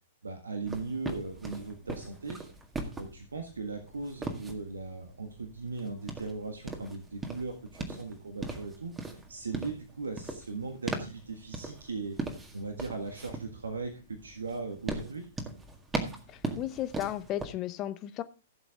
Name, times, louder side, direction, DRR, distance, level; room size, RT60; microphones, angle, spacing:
voice 1, 0.2-2.4 2.9-12.2 12.5-15.3, right 4 dB, 75° right, 5 dB, 1.6 m, -38 dB
sound 1, 0.6-17.5, right 3 dB, 15° right, 1.9 m, -40 dB
voice 2, 16.6-18.2, left 13 dB, 30° left, 12 dB, 0.8 m, -34 dB
15.5 x 7.2 x 3.7 m, 0.36 s
figure-of-eight pair, 110°, 0 cm